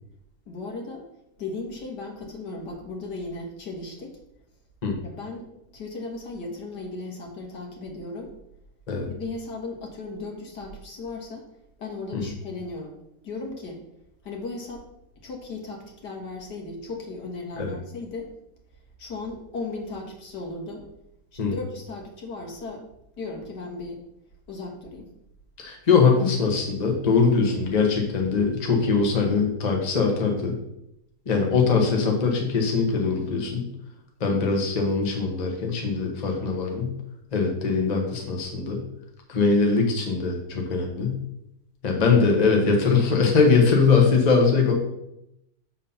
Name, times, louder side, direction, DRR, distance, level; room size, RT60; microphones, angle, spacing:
voice 1, 0.5-1.0 1.4-4.1 5.0-5.5 5.7-8.3 9.1-11.4 11.8-13.0 13.2-13.8 14.2-14.9 15.2-18.3 19.0-20.8 21.3-22.8 23.2-24.0 24.5-25.1, left 3 dB, 75° left, 0 dB, 2.1 m, -36 dB
voice 2, 25.6-30.6 31.3-33.7 34.2-36.9 37.3-38.8 39.3-41.2 41.8-44.7, left 4 dB, 30° left, 1 dB, 1.1 m, -22 dB
7.1 x 4.4 x 5.5 m, 0.83 s
omnidirectional pair, 1.8 m